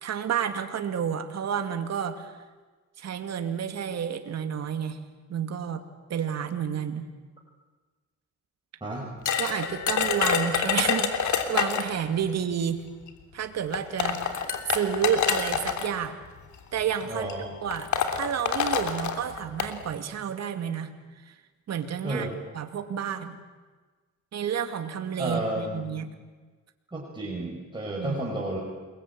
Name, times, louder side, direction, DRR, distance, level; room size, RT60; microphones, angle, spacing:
voice 1, 0.0-2.3 3.0-5.0 5.3-5.8 6.1-7.0 9.4-12.8 13.3-14.4 14.7-16.2 16.7-17.3 17.6-20.9 21.3-21.4 21.7-22.3 22.5-23.4 24.3-26.1 28.0-28.2, right 8 dB, 60° right, 7 dB, 2.6 m, -30 dB
sound 1, 9.3-12.0 13.1-13.2 13.7-15.9 16.8-17.0 17.3-17.4 17.7-19.7, left 7 dB, 70° left, 3.2 m, -27 dB
voice 2, 17.1-17.5 22.0-22.3 25.2-26.0 26.9-28.6, right 1 dB, 15° right, -4 dB, 6.4 m, -32 dB
29.0 x 22.0 x 8.9 m, 1.3 s
cardioid pair, 90°, 30 cm